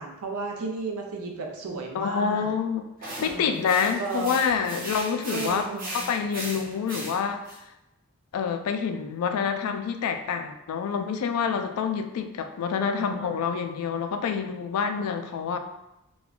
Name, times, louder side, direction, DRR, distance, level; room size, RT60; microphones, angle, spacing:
voice 1, 0.0-2.5 3.2-3.6 4.0-4.3 5.3-6.0 12.8-13.4, right 3 dB, 85° right, 1 dB, 0.5 m, -34 dB
voice 2, 1.9-2.9 3.2-5.6 5.9-7.5 8.3-15.6, left 6 dB, 85° left, 7 dB, 0.3 m, -27 dB
sound 1, 3.0-7.6, right 1 dB, 40° right, 0.7 m, -37 dB
3.1 x 2.2 x 2.4 m, 0.92 s
head